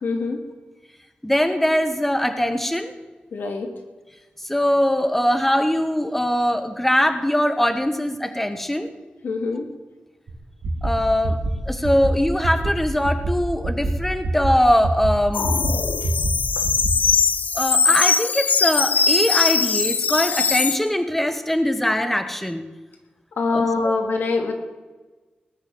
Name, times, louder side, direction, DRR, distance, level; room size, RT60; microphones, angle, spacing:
voice 1, 0.0-0.4 3.3-3.7 9.2-9.7 16.0-16.1 16.6-16.7 23.4-24.5, left 3 dB, 90° left, 4 dB, 2.8 m, -24 dB
voice 2, 1.2-2.9 4.4-8.9 10.8-11.4 11.7-15.5 17.5-22.6 23.5-23.9, equal, 5° left, 9 dB, 1.2 m, -21 dB
sound 1, 10.3-10.4 10.6-10.9 11.2-11.5 11.8-12.1 12.4-12.7 13.0-13.3 13.6-13.9 14.2-14.5 14.8-15.1 15.4-15.7 16.0-16.3 16.6-16.9, right 2 dB, 75° right, 3.0 m, -24 dB
sound 2, 15.3-20.8, left 5 dB, 60° left, 0.9 m, -21 dB
19.0 x 6.7 x 9.3 m, 1.2 s
wide cardioid pair, 130°, 3 cm